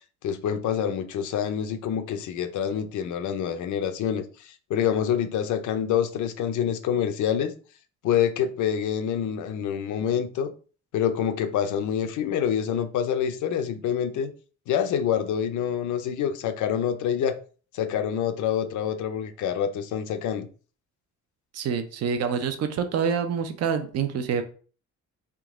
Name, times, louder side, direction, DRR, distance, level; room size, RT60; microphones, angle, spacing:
voice 1, 0.2-7.5 8.0-10.5 10.9-14.3 14.7-17.4 17.7-20.5, left 8 dB, 85° left, 0.6 m, -26 dB
voice 2, 21.5-24.4, right 6 dB, 60° right, 0.6 m, -26 dB
3.7 x 2.9 x 3.6 m
cardioid pair, 150°, 29 cm